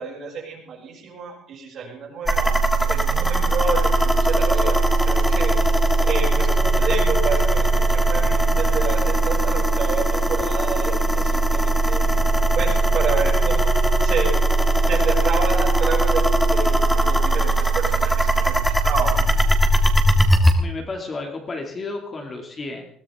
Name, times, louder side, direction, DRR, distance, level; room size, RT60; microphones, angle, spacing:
voice 1, 0.0-2.6 2.9-5.7 6.0-12.0 12.5-13.7 14.0-14.3 14.9-19.3, right 5 dB, 45° right, -1 dB, 6.9 m, -29 dB
sound 1, 2.3-20.5, right 2 dB, 5° left, 1.8 m, -19 dB
voice 2, 20.6-22.9, left 3 dB, 25° left, 3 dB, 2.4 m, -32 dB
21.0 x 18.0 x 3.6 m, 0.64 s
cardioid pair, 165°, 0 cm